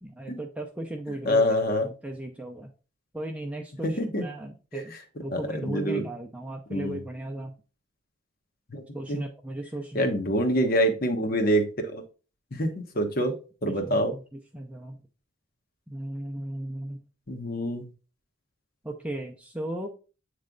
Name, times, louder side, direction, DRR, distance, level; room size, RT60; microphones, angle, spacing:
voice 1, 0.0-1.4 1.8-2.7 3.1-7.5 8.9-10.1 13.6-15.0 15.9-17.0 18.8-19.9, right 1 dB, 5° right, 1 dB, 0.5 m, -36 dB
voice 2, 1.2-1.9 3.8-4.2 4.7-5.0 5.3-6.0 6.7-7.0 8.7-9.2 9.9-12.0 12.5-13.4 13.6-14.1 17.3-17.9, equal, 50° left, 6 dB, 1.1 m, -26 dB
8.0 x 3.2 x 3.8 m, 0.35 s
head